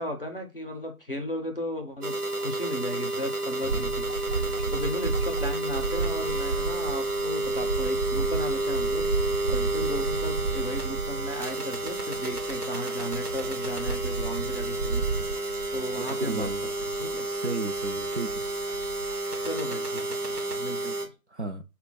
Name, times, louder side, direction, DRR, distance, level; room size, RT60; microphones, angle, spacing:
voice 1, 0.0-9.1 9.5-15.4 15.7-16.5 16.8-17.3 19.4-21.1, equal, 40° left, 0.5 m, -36 dB
sound 1, 2.0-21.1, right 2 dB, 90° right, 1.1 m, -31 dB
sound 2, 3.6-19.6 19.9-20.5, right 4 dB, 70° right, 0.9 m, -34 dB
voice 2, 15.9-16.6 17.3-18.4 21.3-21.6, right 3 dB, 50° right, 0.5 m, -33 dB
4.1 x 2.2 x 4.0 m
figure-of-eight pair, 155°, 45 cm